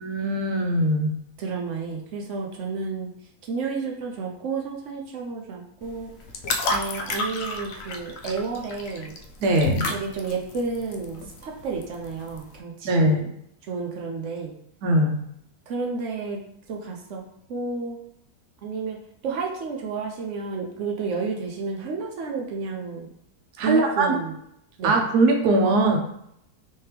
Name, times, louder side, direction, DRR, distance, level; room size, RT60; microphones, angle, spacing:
voice 1, 0.0-1.1 9.4-9.8 12.8-13.2 14.8-15.1 23.6-24.2 24.8-26.0, right 2 dB, 85° right, 2 dB, 1.2 m, -21 dB
voice 2, 1.4-3.1 3.4-6.1 6.7-9.1 9.9-13.3 13.7-14.5 15.7-16.4 16.7-17.2 17.5-18.0 18.6-23.1 23.6-24.4 24.8-25.0, right 4 dB, 65° right, 0 dB, 0.8 m, -31 dB
sound 1, 5.8-12.6, left 2 dB, 85° left, 0.5 m, -32 dB
3.3 x 3.0 x 3.3 m, 0.74 s
omnidirectional pair, 1.7 m